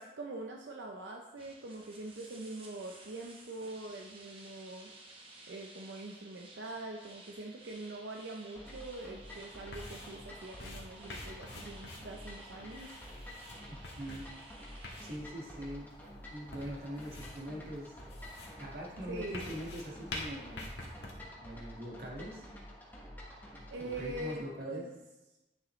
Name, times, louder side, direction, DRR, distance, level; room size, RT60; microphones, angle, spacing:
voice 1, 0.0-5.2 5.5-13.0 19.1-19.5 23.7-24.9, right 2 dB, 85° right, 1 dB, 0.6 m, -44 dB
sound 1, 1.4-15.2, right 2 dB, 30° right, 1.1 m, -55 dB
sound 2, 8.6-24.4, equal, 10° left, 1.2 m, -49 dB
sound 3, 8.9-21.1, left 2 dB, 75° left, 1.6 m, -48 dB
voice 2, 13.7-14.3 15.0-16.0 16.3-18.0 18.5-22.5 23.8-24.8, equal, 55° right, -2 dB, 1.7 m, -43 dB
9.8 x 6.5 x 3.2 m, 1.0 s
head